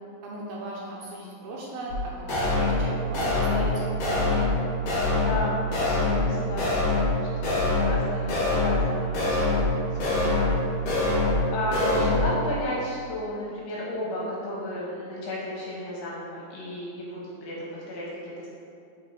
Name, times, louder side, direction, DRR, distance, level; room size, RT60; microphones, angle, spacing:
voice 1, 0.2-4.5, right 1 dB, 75° right, -4 dB, 2.3 m, -36 dB
sound 1, 1.9-2.0 2.3-2.9 3.1-3.7 4.0-4.6 4.9-5.4 5.7-6.3 6.6-7.1 7.4-8.0 8.3-8.9 9.1-9.7 10.0-10.6 10.9-11.4 11.7-12.3, left 2 dB, 55° left, 1.8 m, -24 dB
voice 2, 5.1-6.7 6.9-7.0 7.4-10.5 11.0-18.5, left 1 dB, 75° left, -5 dB, 2.4 m, -33 dB
5.6 x 4.3 x 4.3 m, 2.5 s
omnidirectional pair, 4.7 m